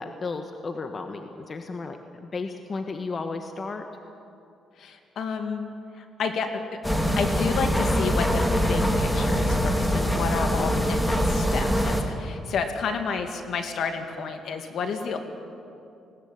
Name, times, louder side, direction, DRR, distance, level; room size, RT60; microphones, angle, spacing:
voice 1, 0.0-3.9 10.5-10.7, left 4 dB, 40° left, 6 dB, 1.3 m, -34 dB
voice 2, 4.8-5.6 6.0-6.5 7.2-15.2, left 5 dB, 70° left, 6 dB, 2.3 m, -30 dB
sound 1, 6.8-12.0, equal, 10° left, 2.4 m, -23 dB
20.0 x 18.0 x 8.7 m, 2.6 s
cardioid pair, 90°, 0 cm